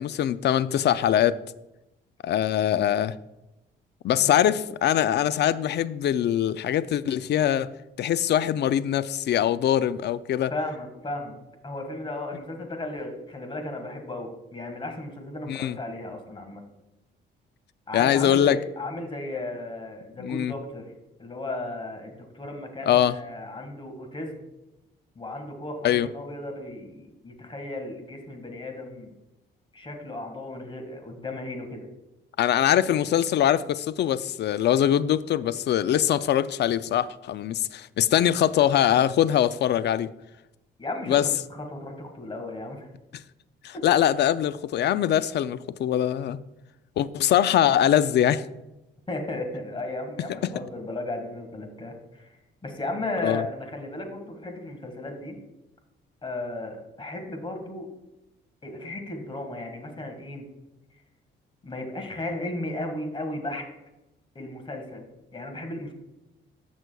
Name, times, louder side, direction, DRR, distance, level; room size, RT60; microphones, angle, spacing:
voice 1, 0.0-1.4 2.2-3.2 4.0-7.7 8.0-10.5 15.5-15.8 17.9-18.6 20.2-20.5 22.9-23.2 25.8-26.1 32.4-40.1 41.1-41.3 43.6-46.4 47.0-48.4 53.2-53.4, left 10 dB, 60° left, 16 dB, 0.4 m, -22 dB
voice 2, 10.5-16.6 17.9-20.9 21.2-24.4 25.2-29.1 29.7-31.9 40.8-42.9 49.1-55.4 56.2-57.9 58.6-60.5 61.6-63.7 64.4-65.9, left 2 dB, 25° left, 4 dB, 1.7 m, -35 dB
14.5 x 6.2 x 2.3 m, 0.96 s
cardioid pair, 90°, 20 cm